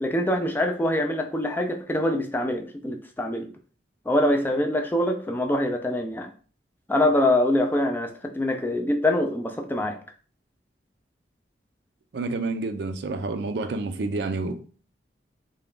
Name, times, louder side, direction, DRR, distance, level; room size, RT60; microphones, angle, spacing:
voice 1, 0.0-3.5 4.1-6.3 6.9-10.0, left 1 dB, 10° left, 0.4 m, -24 dB
voice 2, 12.1-14.6, right 3 dB, 65° right, 0.4 m, -29 dB
3.5 x 2.2 x 3.7 m
head